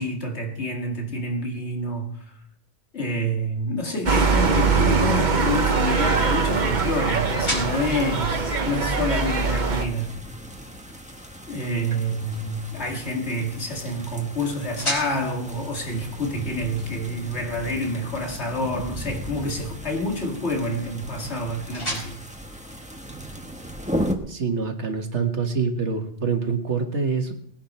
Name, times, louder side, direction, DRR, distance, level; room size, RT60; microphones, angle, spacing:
voice 1, 0.0-2.1 2.9-10.2 11.5-22.2, equal, 70° left, 2.5 m, -28 dB
sound 1, 4.1-9.9, right 4 dB, 40° right, 1.2 m, -22 dB
sound 2, 4.7-23.6, left 1 dB, 55° left, 5.3 m, -40 dB
sound 3, 5.4-24.1, equal, 5° right, 1.2 m, -37 dB
voice 2, 24.3-27.3, right 5 dB, 75° right, 1.9 m, -25 dB
20.0 x 10.5 x 4.4 m
omnidirectional pair, 1.2 m